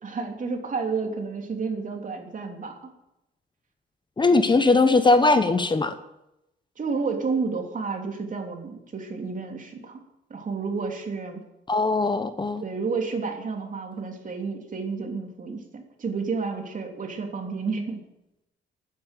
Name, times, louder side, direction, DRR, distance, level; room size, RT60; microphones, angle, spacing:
voice 1, 0.0-2.9 4.3-4.5 6.8-10.0 10.3-11.4 12.6-18.0, right 4 dB, 40° right, 3 dB, 3.3 m, -31 dB
voice 2, 4.2-5.9 11.7-12.6, left 3 dB, 25° left, 10 dB, 1.0 m, -20 dB
11.5 x 10.0 x 9.2 m, 0.87 s
cardioid pair, 90°, 20 cm